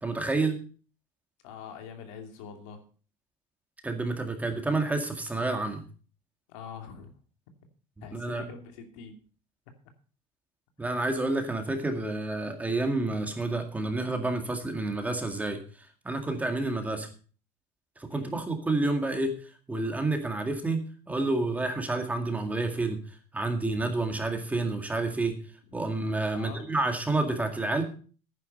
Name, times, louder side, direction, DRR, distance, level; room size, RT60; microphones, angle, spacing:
voice 1, 0.0-0.6 3.8-5.8 8.0-8.4 10.8-15.6 16.0-17.1 18.0-20.8 21.1-23.0 23.3-25.3 25.7-27.8, right 2 dB, 10° right, 4 dB, 2.0 m, -29 dB
voice 2, 1.4-2.8 6.5-7.1 8.0-9.2 18.1-18.4 26.3-26.7, left 6 dB, 90° left, 5 dB, 2.6 m, -44 dB
11.0 x 9.9 x 5.3 m, 0.40 s
cardioid pair, 145°, 16 cm